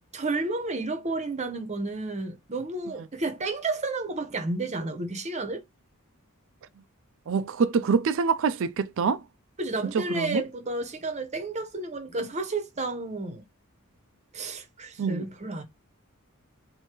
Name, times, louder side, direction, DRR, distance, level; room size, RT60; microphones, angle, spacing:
voice 1, 0.1-5.6 9.6-13.4 14.3-15.6, right 2 dB, 30° right, 0.9 m, -31 dB
voice 2, 7.3-9.2 9.9-10.4 15.0-15.2, right 5 dB, 60° right, 0.4 m, -25 dB
3.1 x 2.7 x 4.4 m
head